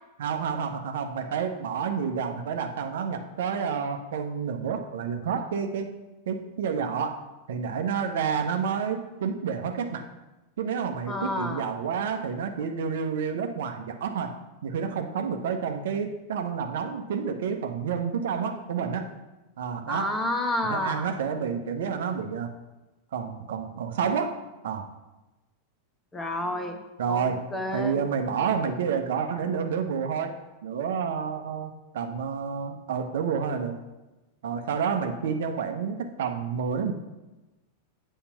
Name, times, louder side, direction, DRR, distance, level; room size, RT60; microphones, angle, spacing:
voice 1, 0.2-5.9 6.3-7.2 7.5-10.0 10.6-14.3 14.6-19.1 19.6-20.2 20.6-22.5 23.1-24.4 24.6-24.9 27.0-27.5 27.7-30.3 30.6-33.8 34.4-36.9, right 6 dB, 60° right, 6 dB, 0.8 m, -29 dB
voice 2, 11.1-11.6 19.9-21.1 26.1-26.8 27.1-28.0, left 1 dB, 15° left, 6 dB, 1.0 m, -30 dB
8.6 x 5.5 x 5.7 m, 1.1 s
figure-of-eight pair, 90°, 0 cm